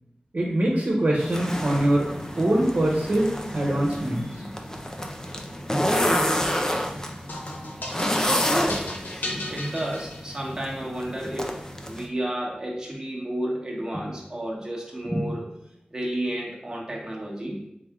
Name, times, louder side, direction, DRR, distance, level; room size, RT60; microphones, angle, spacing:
voice 1, 0.3-2.1 2.4-4.4, right 1 dB, 60° right, -4 dB, 0.9 m, -23 dB
sound 1, 1.2-12.1, equal, 20° left, 0.6 m, -29 dB
sound 2, 7.3-10.7, left 1 dB, 85° left, 0.7 m, -35 dB
voice 2, 9.3-15.5 15.9-17.6, right 1 dB, 20° right, -4 dB, 1.2 m, -31 dB
3.6 x 3.4 x 3.6 m, 0.82 s
wide cardioid pair, 50°, 3 cm